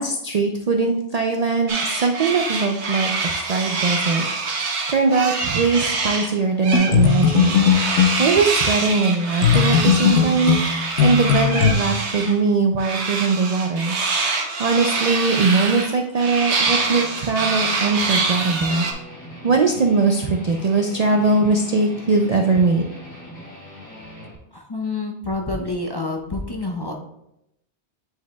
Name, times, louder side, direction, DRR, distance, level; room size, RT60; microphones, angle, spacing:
voice 1, 0.0-4.3 4.5-14.0 14.2-18.9 19.4-22.9, right 4 dB, 55° right, 3 dB, 0.4 m, -21 dB
sound 1, 1.7-6.3 6.6-12.3 12.8-18.9, right 4 dB, 80° right, 1.2 m, -25 dB
sound 2, 6.7-8.2 9.4-11.7, left 8 dB, 90° left, 1.0 m, -17 dB
Guitar, 16.7-24.3, equal, 45° left, 2.8 m, -40 dB
voice 2, 24.5-26.9, left 2 dB, 30° left, 0 dB, 0.5 m, -27 dB
9.1 x 4.7 x 2.2 m, 0.82 s
omnidirectional pair, 1.1 m